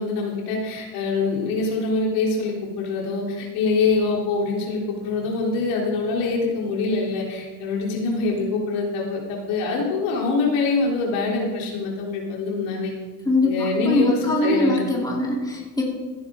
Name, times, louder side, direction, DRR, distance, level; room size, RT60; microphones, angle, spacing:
voice 1, 0.0-12.9 13.4-15.1, left 3 dB, 75° left, -2 dB, 3.8 m, -24 dB
voice 2, 13.8-15.8, left 1 dB, 10° left, -3 dB, 3.5 m, -22 dB
15.5 x 9.9 x 3.9 m, 1.3 s
supercardioid pair, 105°, 44 cm